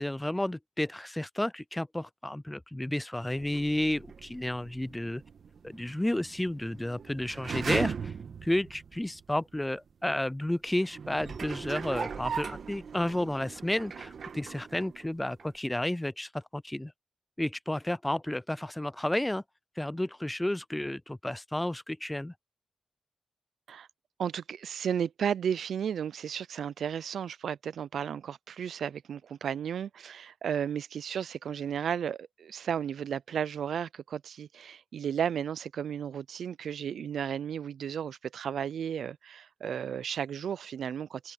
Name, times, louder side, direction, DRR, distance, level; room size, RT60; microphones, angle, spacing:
voice 1, 0.0-5.2 5.6-8.1 8.4-16.9 17.4-19.4 19.8-22.3, left 1 dB, 15° left, 0.3 m, -32 dB
sound 1, 3.2-9.3 9.9-10.0 10.8-15.1 15.4-15.5, right 6 dB, 75° right, 1.4 m, -39 dB
voice 2, 24.2-41.3, right 8 dB, 90° right, 0.4 m, -34 dB
cardioid pair, 60°, 0 cm